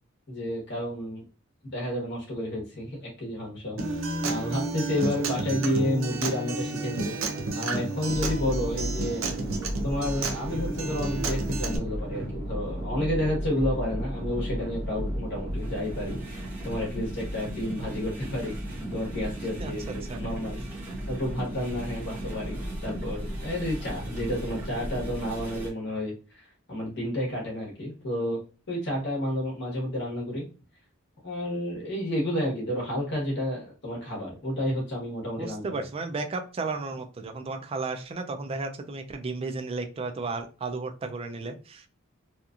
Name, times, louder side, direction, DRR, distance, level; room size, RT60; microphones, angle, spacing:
voice 1, 0.3-1.2 1.6-4.0 4.2-7.2 7.5-9.2 9.8-20.6 21.1-28.4 28.7-30.4 31.2-35.7, left 1 dB, 60° left, -3 dB, 1.1 m, -31 dB
Acoustic guitar, 3.8-11.8, right 3 dB, 75° right, 0.6 m, -31 dB
sound 1, 8.1-25.7, equal, 10° right, 0.9 m, -34 dB
voice 2, 19.6-20.2 35.4-41.9, right 3 dB, 30° right, 5 dB, 0.3 m, -34 dB
2.8 x 2.4 x 2.4 m, 0.34 s
head